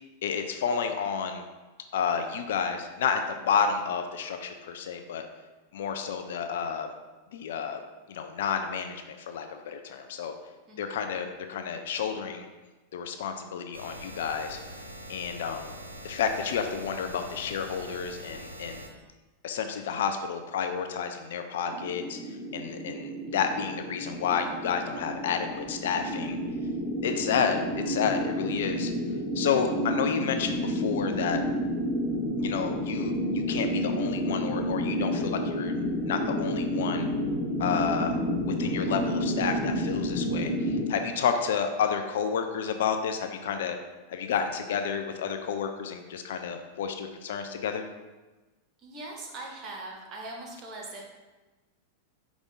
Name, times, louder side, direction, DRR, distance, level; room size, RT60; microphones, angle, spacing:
voice 1, 0.2-1.5 1.9-5.3 5.7-6.9 7.3-7.8 8.1-10.3 10.8-12.5 12.9-14.6 15.1-15.8 16.0-18.8 19.4-22.2 22.5-26.4 27.0-28.9 29.4-31.4 32.4-35.8 36.1-37.1 37.6-38.1 38.4-43.8 44.1-47.9, left 7 dB, 55° left, 6 dB, 0.3 m, -30 dB
voice 2, 10.7-11.0 23.3-23.4 29.4-29.6 41.1-41.3 48.8-51.1, right 2 dB, 30° right, -1 dB, 1.0 m, -41 dB
sound 1, 13.7-18.9, right 1 dB, 85° right, 0.5 m, -43 dB
sound 2, 21.7-40.9, equal, ahead, 0.7 m, -30 dB
4.9 x 2.4 x 3.9 m, 1.2 s
figure-of-eight pair, 90°, 0 cm